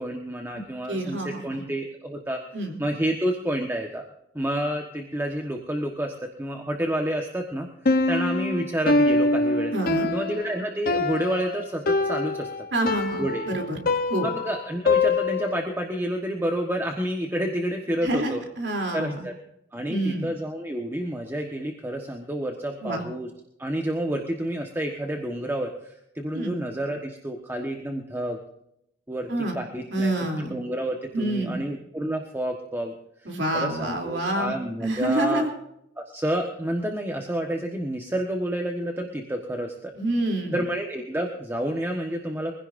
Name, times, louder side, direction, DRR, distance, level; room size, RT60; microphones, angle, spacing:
voice 1, 0.0-2.4 2.8-4.0 4.3-9.7 10.1-12.5 13.2-13.5 14.2-18.4 18.9-19.3 19.7-23.3 23.6-28.4 29.1-30.1 30.4-32.9 33.5-35.4 36.0-39.9 40.5-42.6, right 1 dB, 15° right, 2 dB, 1.3 m, -29 dB
voice 2, 0.9-1.6 2.5-2.8 9.7-10.1 12.7-13.8 14.1-14.3 18.0-19.2 19.9-20.3 22.8-23.0 26.3-26.5 29.3-29.6 29.9-30.5 31.1-31.6 33.2-34.5 34.8-35.5 39.9-40.5, right 1 dB, 70° right, 2 dB, 3.2 m, -27 dB
Piano, 7.9-15.7, left 2 dB, 55° left, 1.0 m, -24 dB
24.0 x 16.0 x 2.6 m, 0.79 s
head